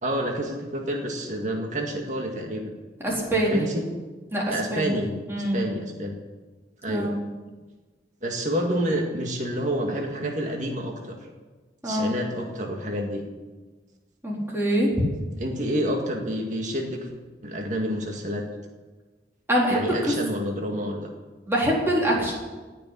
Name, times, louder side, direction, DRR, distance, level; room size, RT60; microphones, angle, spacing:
voice 1, 0.0-2.7 3.3-3.8 4.5-5.1 5.5-6.1 6.8-7.2 8.2-11.2 11.8-13.2 15.4-17.1 17.4-18.4 19.7-21.1, equal, 45° right, 1 dB, 2.0 m, -28 dB
voice 2, 3.0-3.7 4.3-4.4 4.7-4.9 5.3-5.6 6.9-7.2 11.8-12.1 14.2-14.9 19.5-19.8 20.1-20.2 21.5-22.3, equal, 15° right, -4 dB, 4.1 m, -24 dB
17.5 x 6.9 x 9.8 m, 1.3 s
head